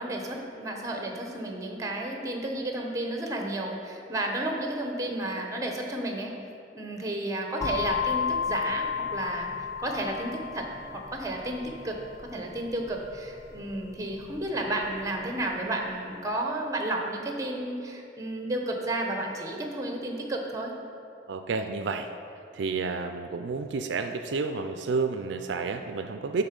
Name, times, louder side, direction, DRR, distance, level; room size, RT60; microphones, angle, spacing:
voice 1, 0.0-6.3 6.7-9.5 9.8-12.0 12.2-20.7, right 1 dB, 20° right, 2 dB, 0.9 m, -32 dB
sound 1, 7.6-15.4, left 6 dB, 15° left, 0.6 m, -34 dB
voice 2, 21.3-22.1 22.5-26.4, right 4 dB, 70° right, 7 dB, 0.4 m, -30 dB
11.5 x 4.0 x 5.2 m, 2.7 s
head